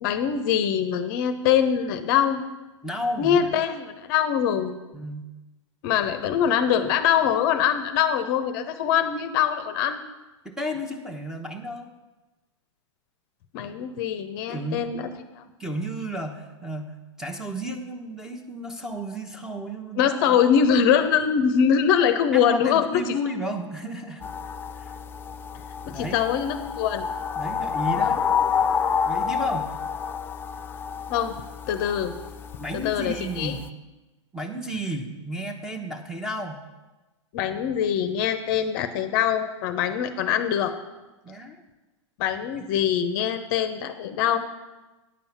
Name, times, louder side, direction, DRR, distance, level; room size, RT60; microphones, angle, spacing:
voice 1, 0.0-2.4 3.2-4.7 5.8-10.0 13.5-15.1 15.4-15.5 20.0-23.2 25.9-27.0 28.0-28.1 31.1-31.4 31.7-32.1 32.7-33.6 37.3-40.7 42.2-44.4, left 8 dB, 45° left, 9 dB, 0.7 m, -23 dB
voice 2, 2.8-3.6 4.9-5.3 10.4-11.9 14.5-14.9 15.6-20.4 22.3-24.2 24.7-24.9 25.8-26.2 27.4-28.3 29.1-29.7 32.6-33.6 34.3-36.6 41.2-41.6 42.6-42.7, equal, 5° right, 4 dB, 1.0 m, -33 dB
sound 1, 24.2-33.7, left 7 dB, 15° left, 0.3 m, -29 dB
9.7 x 5.5 x 7.2 m, 1.1 s
hypercardioid pair, 120°, 16 cm